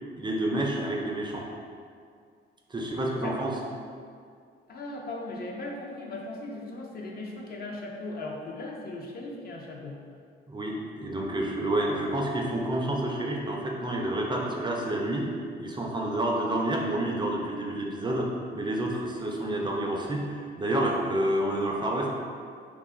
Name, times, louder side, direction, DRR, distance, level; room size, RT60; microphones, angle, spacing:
voice 1, 0.2-1.5 2.7-3.6 10.5-15.3 15.6-18.3 18.5-22.1, right 1 dB, 25° right, -1 dB, 0.4 m, -29 dB
voice 2, 4.7-10.0, left 2 dB, 50° left, -1 dB, 0.5 m, -38 dB
2.4 x 2.3 x 3.5 m, 2.2 s
cardioid pair, 90°, 20 cm